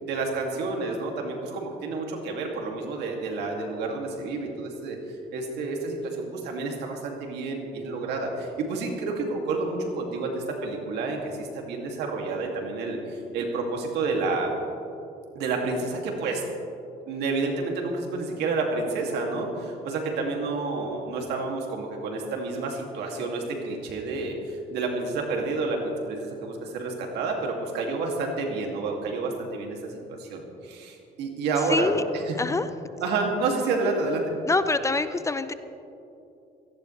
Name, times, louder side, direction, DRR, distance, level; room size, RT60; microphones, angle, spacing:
voice 1, 0.0-5.0 5.3-14.5 15.3-16.4 17.0-32.3 33.0-34.2, right 3 dB, 80° right, 1 dB, 2.5 m, -29 dB
voice 2, 31.7-32.0 32.4-32.7 34.5-35.5, left 3 dB, 20° left, 11 dB, 0.5 m, -25 dB
17.5 x 15.5 x 3.3 m, 2.7 s
cardioid pair, 110°, 17 cm